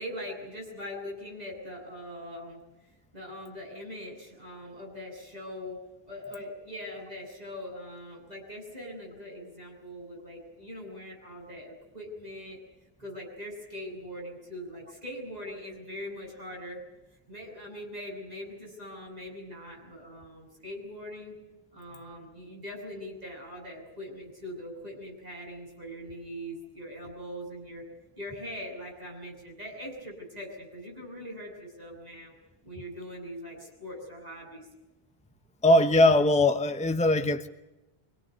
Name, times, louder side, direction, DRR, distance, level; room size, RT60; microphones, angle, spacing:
voice 1, 0.0-2.6 3.1-5.8 6.1-12.6 13.0-16.8 17.3-21.4 21.7-27.8 28.2-32.3 32.6-34.7, equal, 40° right, -1 dB, 8.2 m, -41 dB
voice 2, 35.6-37.5, left 1 dB, 5° left, 8 dB, 1.0 m, -21 dB
26.0 x 17.5 x 9.6 m, 1.0 s
omnidirectional pair, 1.0 m